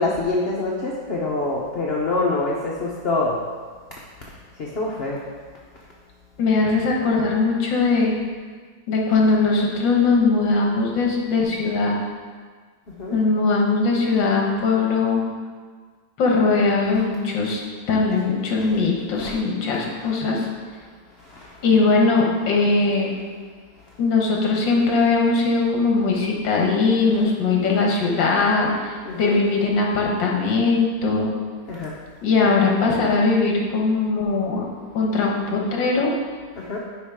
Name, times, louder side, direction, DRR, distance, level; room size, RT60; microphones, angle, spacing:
voice 1, 0.0-3.4 4.6-5.2 13.0-13.2 18.6-18.7 19.1-19.4 21.3-21.4 29.0-29.4 31.7-31.9 36.6-36.8, left 2 dB, 55° left, -3 dB, 0.6 m, -25 dB
voice 2, 6.4-8.2 8.9-12.0 13.1-15.2 16.2-17.6 17.9-20.5 21.6-23.1 24.0-31.3 32.2-34.6 34.9-36.1, left 3 dB, 70° left, -1 dB, 1.8 m, -20 dB
9.3 x 5.1 x 3.5 m, 1.6 s
omnidirectional pair, 2.1 m